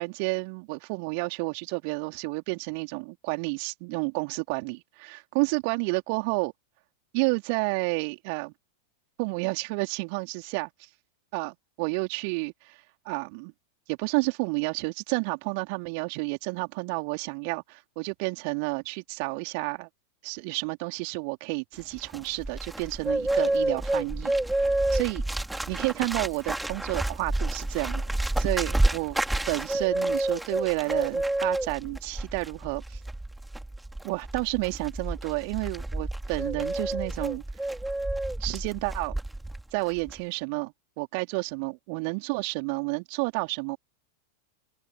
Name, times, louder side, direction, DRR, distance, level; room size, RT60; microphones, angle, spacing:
voice 1, 0.0-6.5 7.1-8.5 9.2-10.7 11.3-11.5 11.8-12.8 13.0-13.5 13.9-19.9 20.2-24.4 24.9-25.2 25.7-29.2 29.5-33.0 34.0-37.4 38.4-39.2 39.7-43.8, right 35 dB, 45° right, 4.5 m, -30 dB
Bird, 21.8-39.6 39.9-40.2, right 1 dB, 5° right, 3.7 m, -29 dB
open air
figure-of-eight pair, 90°, 0 cm